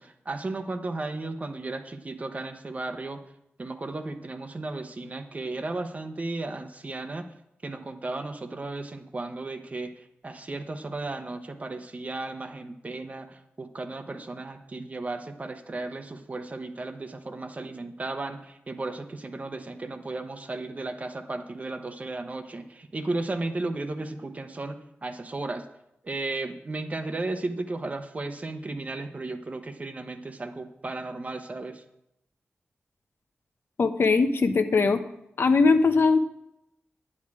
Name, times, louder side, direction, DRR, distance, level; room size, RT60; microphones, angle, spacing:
voice 1, 0.0-3.2 3.6-7.3 7.6-25.6 26.0-31.8, right 2 dB, 35° right, 7 dB, 0.9 m, -35 dB
voice 2, 33.8-35.0 35.4-36.2, left 4 dB, 65° left, 8 dB, 0.8 m, -20 dB
10.0 x 9.7 x 4.8 m, 0.82 s
wide cardioid pair, 145°, 4 cm